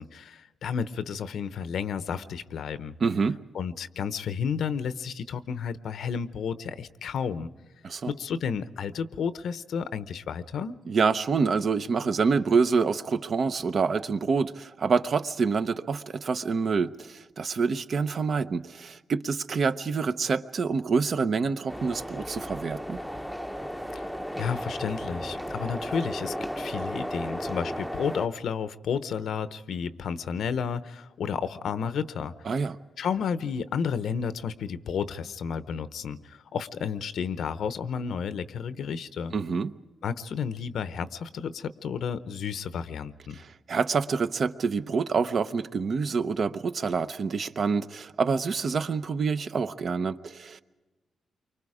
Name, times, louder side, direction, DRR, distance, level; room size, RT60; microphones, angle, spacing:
voice 1, 0.0-2.9 3.5-7.5 8.1-10.8 23.9-24.1 24.4-32.3 33.0-39.3 40.0-43.4, left 7 dB, 75° left, 13 dB, 0.9 m, -32 dB
voice 2, 3.0-3.4 7.8-8.1 10.9-23.0 32.5-32.8 39.3-39.7 43.3-50.6, right 5 dB, 50° right, 11 dB, 0.8 m, -27 dB
sound 1, 21.7-28.3, equal, ahead, 0.8 m, -34 dB
29.5 x 24.5 x 5.0 m, 1.2 s
cardioid pair, 120°, 0 cm